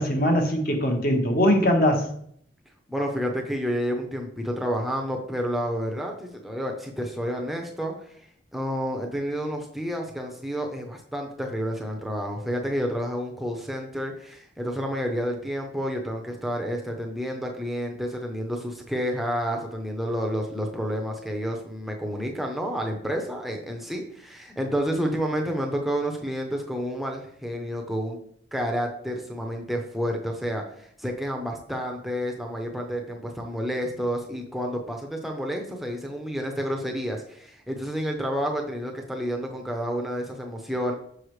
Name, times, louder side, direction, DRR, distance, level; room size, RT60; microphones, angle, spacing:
voice 1, 0.0-2.1, equal, 55° left, 3 dB, 1.2 m, -21 dB
voice 2, 2.9-7.9 8.5-28.2 28.5-40.9, equal, ahead, 1 dB, 0.6 m, -30 dB
6.5 x 5.3 x 3.2 m, 0.65 s
head